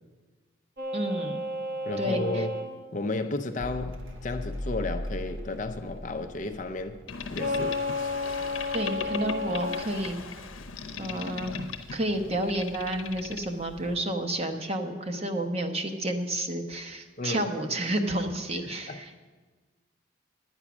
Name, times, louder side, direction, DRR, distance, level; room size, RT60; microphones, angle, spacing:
sound 1, 0.8-2.7 7.4-9.8, left 2 dB, 50° right, 1.3 m, -32 dB
voice 1, 0.9-1.4 2.0-2.4 8.7-10.2 11.0-11.5 11.9-19.1, right 1 dB, 30° right, 5 dB, 0.9 m, -30 dB
voice 2, 1.9-2.5 2.9-7.0 7.3-8.1 17.2-17.5 18.9-19.0, left 2 dB, 40° left, 7 dB, 0.5 m, -33 dB
Mechanical fan, 3.6-10.5 10.7-11.5, left 1 dB, 75° right, 1.2 m, -40 dB
Boat Water vehicle, 7.1-14.0, left 5 dB, 80° left, 0.8 m, -39 dB
9.8 x 9.6 x 6.0 m, 1.4 s
head